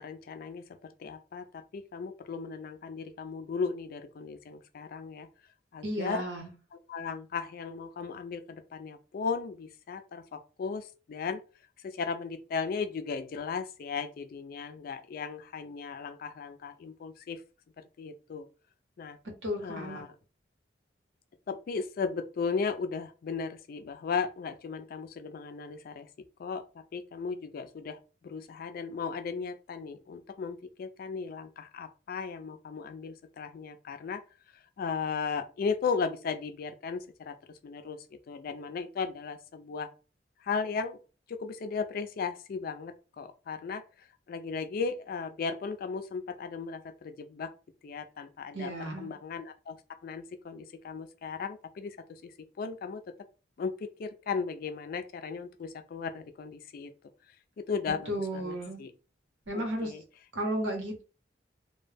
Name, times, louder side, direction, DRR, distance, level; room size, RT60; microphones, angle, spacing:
voice 1, 0.0-5.3 5.7-6.2 6.7-11.5 11.8-17.4 17.8-18.5 19.0-19.2 19.6-20.1 21.5-26.1 26.4-34.2 34.5-39.9 40.4-41.0 41.3-47.5 47.8-53.1 53.6-56.9 57.3-58.9 59.5-60.0, left 5 dB, 50° left, 0.3 m, -36 dB
voice 2, 5.8-6.5 19.4-20.0 48.5-49.1 58.1-58.8 59.5-59.9 60.3-61.0, equal, 90° right, 0.9 m, -33 dB
2.2 x 2.1 x 3.2 m
head